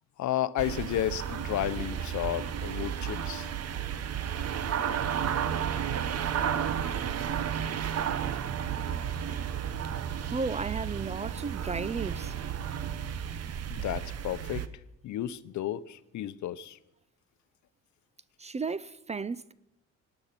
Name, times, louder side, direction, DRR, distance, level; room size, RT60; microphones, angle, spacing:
voice 1, 0.2-3.5 13.7-14.7 15.0-16.8, left 12 dB, 70° left, 0.8 m, -32 dB
sound 1, 0.6-14.7, right 8 dB, 55° right, 0.9 m, -32 dB
voice 2, 10.3-12.3 18.4-19.5, right 4 dB, 25° right, 0.4 m, -34 dB
18.5 x 9.8 x 5.9 m
cardioid pair, 90°, 30 cm